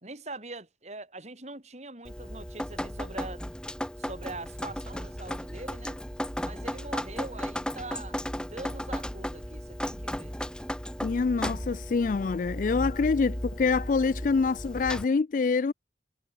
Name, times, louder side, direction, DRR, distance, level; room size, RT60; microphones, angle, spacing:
voice 1, 0.0-3.4 4.0-6.0 6.4-10.4, right 2 dB, 40° right, 3.8 m, -43 dB
Drip, 2.0-15.0, equal, 5° left, 1.4 m, -35 dB
voice 2, 11.0-15.7, left 4 dB, 45° left, 0.4 m, -26 dB
head